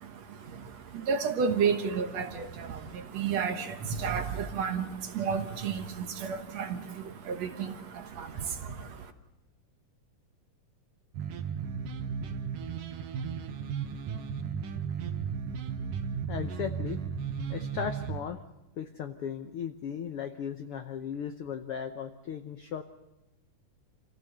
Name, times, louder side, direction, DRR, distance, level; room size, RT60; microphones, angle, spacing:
voice 1, 0.0-9.1, right 6 dB, 60° right, 7 dB, 2.2 m, -32 dB
sound 1, 11.1-18.2, right 6 dB, 90° right, 2.8 m, -35 dB
voice 2, 16.3-17.0 17.5-18.4 18.8-22.8, left 8 dB, 80° left, 7 dB, 1.3 m, -36 dB
27.5 x 15.5 x 6.8 m, 0.99 s
omnidirectional pair, 3.7 m